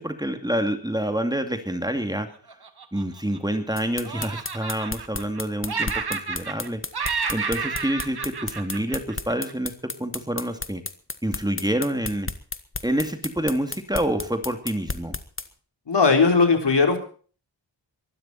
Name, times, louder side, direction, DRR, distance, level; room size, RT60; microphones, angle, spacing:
voice 1, 0.0-2.3 2.9-6.8 7.3-10.8 11.2-12.3 12.8-15.2, right 1 dB, 10° right, 7 dB, 2.5 m, -27 dB
Laughter, 2.5-3.7 4.0-5.4 5.7-6.7 6.9-9.5, right 5 dB, 55° right, 2.0 m, -31 dB
sound 1, 3.8-15.5, left 3 dB, 25° left, 1.6 m, -32 dB
voice 2, 15.9-17.0, left 4 dB, 65° left, 5 dB, 3.9 m, -18 dB
23.0 x 12.5 x 4.3 m, 0.41 s
wide cardioid pair, 65°, 45 cm